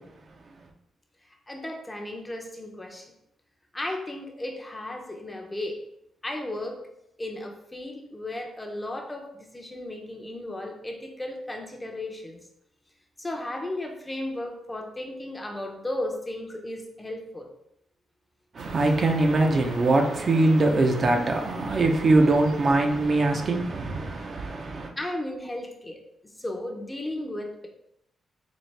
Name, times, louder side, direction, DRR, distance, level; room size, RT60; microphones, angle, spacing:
voice 1, 1.5-3.1 3.7-5.8 6.2-6.8 7.2-12.4 13.2-17.5 25.0-26.0 26.4-27.7, left 1 dB, 15° left, 0.6 m, -35 dB
voice 2, 18.5-24.9, right 2 dB, 45° right, 0.5 m, -22 dB
sound 1, 18.6-23.6, right 2 dB, 85° right, 0.7 m, -43 dB
4.1 x 2.7 x 3.2 m
cardioid pair, 105°, 0 cm